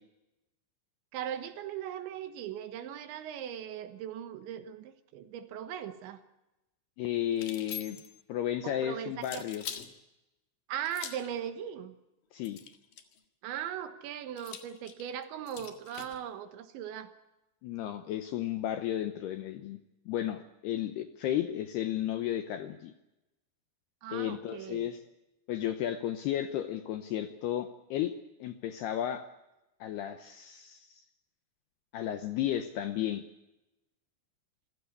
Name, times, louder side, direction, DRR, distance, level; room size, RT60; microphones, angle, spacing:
voice 1, 1.1-6.2 8.6-9.4 10.7-12.0 13.4-17.1 24.0-24.9, right 9 dB, 70° right, 9 dB, 3.4 m, -39 dB
voice 2, 7.0-8.0 8.3-9.7 12.3-12.6 17.6-19.8 20.1-22.9 24.1-25.0 25.5-29.3 29.8-31.0 31.9-33.2, left 11 dB, 75° left, 8 dB, 2.4 m, -33 dB
sound 1, 7.3-8.2 9.2-9.9 10.8-11.3 12.4-13.2 14.4-16.2, left 9 dB, 60° left, 2.7 m, -43 dB
27.5 x 16.0 x 8.2 m, 0.97 s
omnidirectional pair, 5.8 m